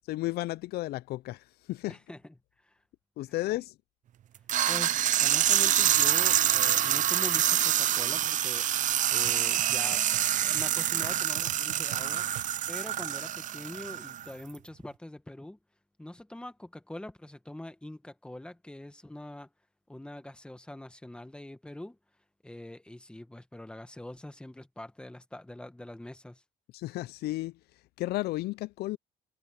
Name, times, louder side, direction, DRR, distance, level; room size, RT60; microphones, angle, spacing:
voice 1, 0.1-2.0 3.2-3.7 26.7-27.6 28.0-29.0, left 17 dB, 70° left, 0.5 m, -33 dB
voice 2, 1.9-2.3 2.6-2.8 4.6-8.7 9.1-10.1 10.4-12.3 12.7-15.6 16.0-19.5 19.9-22.0 22.4-26.4, left 1 dB, 5° left, 1.5 m, -43 dB
sound 1, 4.5-14.3, right 11 dB, 50° right, 0.5 m, -26 dB
sound 2, 9.2-12.9, right 17 dB, 90° right, 1.0 m, -48 dB
cardioid pair, 110°, 17 cm